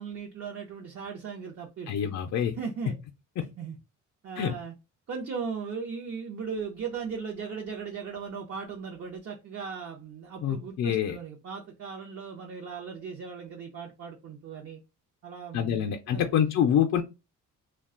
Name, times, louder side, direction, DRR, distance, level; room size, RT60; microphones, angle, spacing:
voice 1, 0.0-2.1 2.6-3.0 3.6-3.8 4.2-4.7 5.1-14.8 15.2-16.5, right 6 dB, 50° right, 0.6 m, -38 dB
voice 2, 1.9-2.5 4.4-4.5 10.4-11.1 15.5-17.0, left 9 dB, 55° left, 0.4 m, -26 dB
2.4 x 2.2 x 3.6 m
cardioid pair, 110°, 32 cm